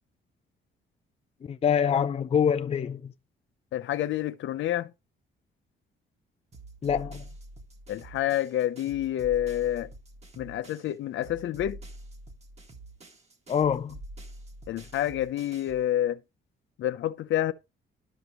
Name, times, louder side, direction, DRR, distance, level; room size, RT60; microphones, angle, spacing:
voice 1, 1.5-3.1 6.8-7.2 13.5-14.0, left 7 dB, 30° left, 0.4 m, -25 dB
voice 2, 3.7-4.9 7.9-9.9 10.4-11.8 14.7-16.2 16.8-17.5, left 12 dB, 75° left, 0.8 m, -28 dB
sound 1, 6.5-10.9 11.2-15.9, right 1 dB, 35° right, 1.9 m, -46 dB
12.0 x 5.1 x 3.0 m
cardioid pair, 90°, 20 cm